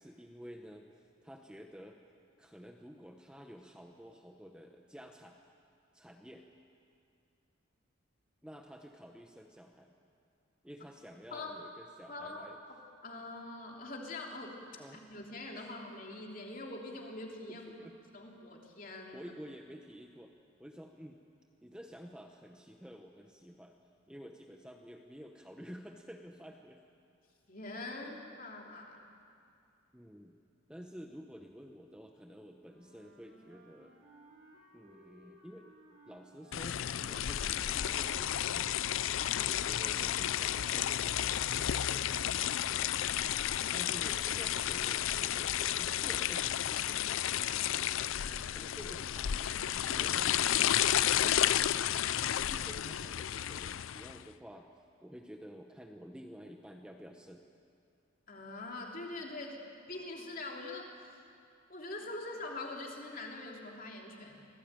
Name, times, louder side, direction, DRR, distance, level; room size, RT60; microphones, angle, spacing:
voice 1, 0.0-2.0 2.4-5.4 5.9-6.4 8.4-10.0 10.6-12.6 14.8-15.0 15.5-15.7 17.5-17.9 19.1-21.2 21.6-23.8 24.1-26.8 29.9-30.3 30.7-33.9 34.7-35.7 36.1-38.8 39.3-42.9 43.7-47.4 48.3-50.3 50.9-51.6 52.3-57.5, equal, 5° right, 3 dB, 0.9 m, -51 dB
voice 2, 12.1-12.4 12.7-12.8 13.0-14.6 14.9-17.7 18.1-19.3 27.5-29.0 58.3-59.6 59.9-61.1 61.7-64.5, left 2 dB, 40° left, 0 dB, 3.1 m, -43 dB
Wind instrument woodwind instrument, 32.6-38.2, right 1 dB, 65° right, 5.0 m, -61 dB
sound 1, 36.5-54.2, left 11 dB, 70° left, 0.5 m, -32 dB
25.5 x 18.0 x 9.0 m, 2.4 s
head